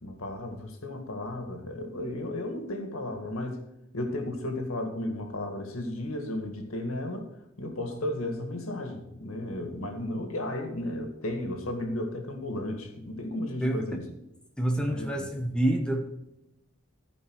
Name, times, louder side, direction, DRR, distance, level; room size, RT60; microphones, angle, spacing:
voice 1, 0.0-3.6 3.9-7.3 7.6-14.1 14.8-15.4, left 1 dB, 90° left, 4 dB, 1.9 m, -34 dB
voice 2, 14.6-16.0, right 1 dB, 5° left, 2 dB, 1.1 m, -27 dB
14.5 x 5.4 x 4.7 m, 0.90 s
head